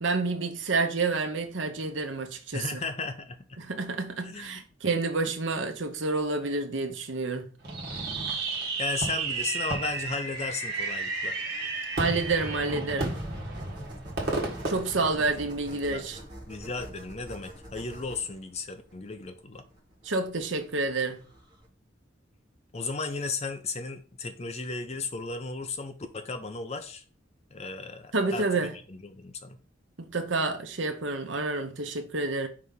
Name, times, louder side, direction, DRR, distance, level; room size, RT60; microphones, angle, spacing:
voice 1, 0.0-2.8 3.6-7.5 12.0-13.2 14.7-16.2 20.0-21.2 28.1-28.7 30.0-32.5, right 3 dB, 75° right, 0.9 m, -29 dB
voice 2, 2.5-3.6 4.2-4.6 8.8-11.4 15.1-15.3 15.9-16.0 16.5-19.6 22.7-27.0 27.5-29.6, left 3 dB, 35° left, 0.7 m, -35 dB
Fireworks, 7.6-15.8, right 3 dB, 55° right, 1.6 m, -32 dB
sound 1, 13.1-21.7, right 1 dB, 25° right, 2.0 m, -46 dB
4.9 x 3.5 x 5.5 m
head